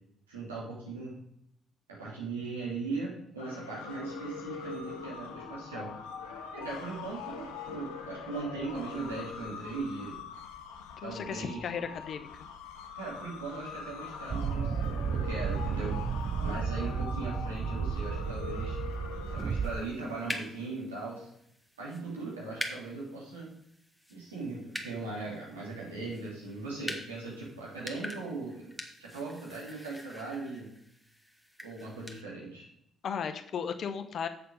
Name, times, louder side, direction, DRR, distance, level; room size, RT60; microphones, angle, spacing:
voice 1, 0.3-1.2 2.0-5.9 6.5-10.1 11.0-11.6 12.9-18.8 19.3-21.3 21.8-23.5 24.1-28.7 29.0-30.7 31.6-32.7, right 3 dB, 90° right, -5 dB, 2.9 m, -39 dB
sound 1, 3.4-19.9, left 6 dB, 80° left, 1.0 m, -43 dB
voice 2, 11.0-12.3 33.0-34.3, left 7 dB, 55° left, 9 dB, 0.9 m, -35 dB
sound 2, 14.3-19.8, right 6 dB, 45° right, 0.5 m, -33 dB
sound 3, 19.6-32.2, equal, ahead, 1.6 m, -45 dB
8.0 x 6.7 x 5.2 m, 0.74 s
hypercardioid pair, 45°, 0 cm